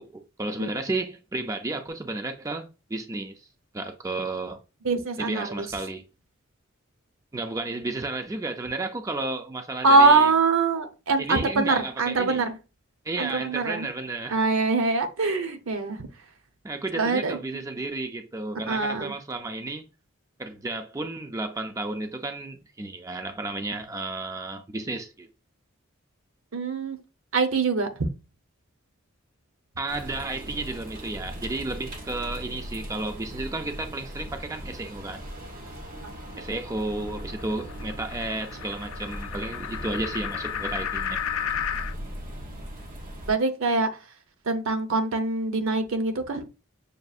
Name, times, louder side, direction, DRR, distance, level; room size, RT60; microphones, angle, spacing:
voice 1, 0.0-3.5 3.7-4.6 5.2-6.0 7.3-10.3 11.2-12.5 13.0-14.4 16.6-19.8 20.4-25.3 29.8-35.2 36.4-41.2, right 2 dB, 15° right, 0.4 m, -32 dB
voice 2, 4.8-5.7 9.8-12.6 13.2-13.9 14.3-16.1 17.0-17.6 18.7-19.1 26.5-27.0 27.3-27.9 43.3-43.9 44.5-46.5, right 3 dB, 75° right, 0.8 m, -23 dB
sound 1, 29.9-43.3, equal, 45° right, 1.0 m, -39 dB
sound 2, 35.2-41.9, left 9 dB, 90° left, 0.4 m, -34 dB
6.4 x 2.5 x 2.4 m
head